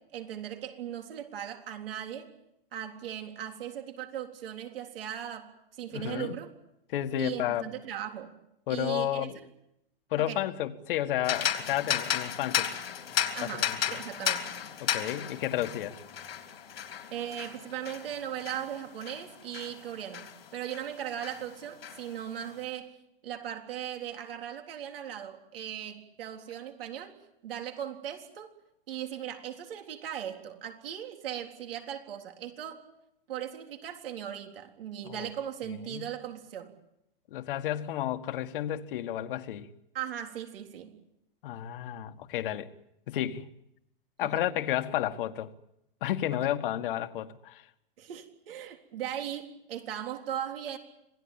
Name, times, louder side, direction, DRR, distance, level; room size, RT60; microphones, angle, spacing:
voice 1, 0.0-2.3 2.7-6.5 7.2-8.3 8.7-9.3 10.2-10.4 13.4-14.5 17.1-22.9 23.2-27.2 27.4-28.5 28.9-32.8 33.3-36.7 39.9-40.9 44.2-44.4 48.0-50.8, right 10 dB, 70° right, 3.8 m, -38 dB
voice 2, 5.9-6.4 6.9-7.7 8.7-9.4 10.1-12.7 13.4-14.0 14.8-16.0 35.1-35.3 35.9-36.0 37.3-39.7 41.4-42.7 43.1-43.5 44.2-45.5 46.0-47.6, left 12 dB, 65° left, 1.9 m, -32 dB
sound 1, 11.2-20.9 21.2-22.5, left 9 dB, 90° left, 3.4 m, -34 dB
27.0 x 19.0 x 8.9 m
hypercardioid pair, 125°, 29 cm